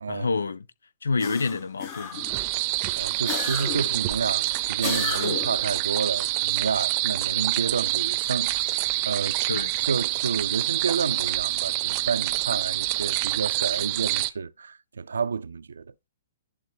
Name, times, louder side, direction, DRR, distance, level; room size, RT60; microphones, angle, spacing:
voice 1, 0.1-0.7 1.0-2.2 9.5-9.7, left 4 dB, 80° left, 0.7 m, -28 dB
sound 1, 1.2-2.4 3.3-4.0 4.8-5.6, left 7 dB, 35° left, 3.4 m, -33 dB
sound 2, 2.1-14.3, right 19 dB, 40° right, 0.7 m, -27 dB
voice 2, 3.0-15.8, right 5 dB, 75° right, 0.5 m, -30 dB
11.0 x 3.8 x 4.6 m
figure-of-eight pair, 120°, 0 cm